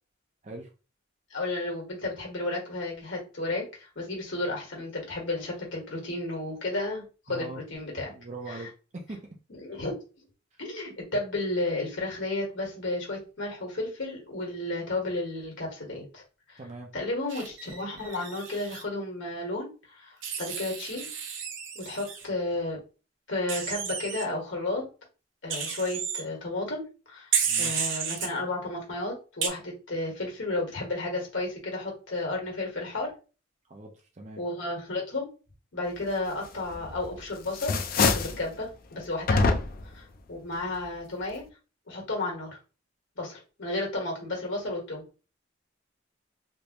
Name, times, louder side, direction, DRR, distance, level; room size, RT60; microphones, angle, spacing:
voice 1, 1.3-8.1 8.5-8.7 9.5-9.9 10.6-16.2 16.5-16.6 16.9-21.1 21.7-22.8 23.3-24.8 25.4-27.3 27.6-33.1 34.4-35.3 35.7-39.6 39.9-41.4 41.9-42.6 43.2-45.0, left 2 dB, 80° left, -1 dB, 1.5 m, -33 dB
voice 2, 7.3-7.6 8.1-8.7 9.1-9.2 16.6-16.9 27.4-27.9 33.7-34.4, right 2 dB, 35° right, 1 dB, 0.6 m, -41 dB
Wild animals, 17.3-18.8 20.2-22.2 23.5-24.2 25.5-26.2 27.3-28.3 29.4-29.5, right 7 dB, 85° right, 0.7 m, -32 dB
sound 1, 36.7-37.2 37.5-38.4 39.3-39.9, left 4 dB, 50° left, 0.4 m, -25 dB
3.3 x 2.6 x 2.9 m, 0.33 s
head